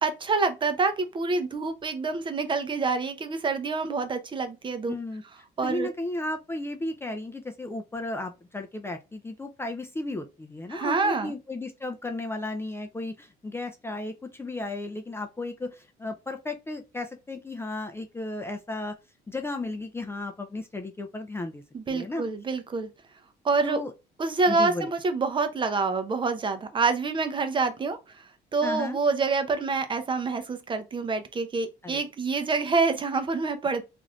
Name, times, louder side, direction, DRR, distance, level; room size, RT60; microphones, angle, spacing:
voice 1, 0.0-5.0 5.6-5.9 10.7-11.3 21.7-22.9 23.4-23.8 24.2-28.0 28.5-33.8, right 4 dB, 30° right, 0.6 m, -27 dB
voice 2, 4.9-5.2 5.6-18.9 19.3-21.6 21.9-22.2 23.6-23.9 24.5-24.9 28.6-29.0 31.8-32.0, left 2 dB, 15° left, 0.4 m, -34 dB
3.1 x 2.5 x 2.3 m
cardioid pair, 110°, 17 cm